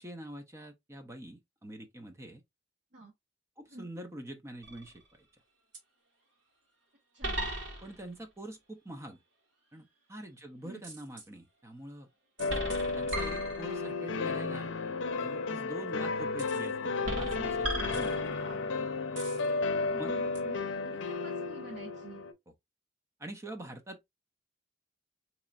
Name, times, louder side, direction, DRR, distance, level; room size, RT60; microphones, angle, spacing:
voice 1, 0.0-2.4 3.6-5.3 7.8-9.2 9.7-12.1 12.9-14.7 15.2-18.2 20.0-20.1 23.2-24.1, right 1 dB, 15° right, 0.5 m, -45 dB
sound 1, 4.6-5.1 5.7-5.8 7.2-8.1 10.8-11.3 12.4-14.0 16.4-16.7 17.0-18.6 19.2-19.5 20.4-20.5, right 1 dB, 85° right, 1.7 m, -37 dB
voice 2, 7.1-7.5 10.6-10.8 16.2-16.4 18.1-18.9 19.7-22.2, right 2 dB, 65° right, 1.0 m, -49 dB
sound 2, 12.4-22.3, left 3 dB, 85° left, 0.6 m, -33 dB
4.2 x 3.0 x 2.4 m
head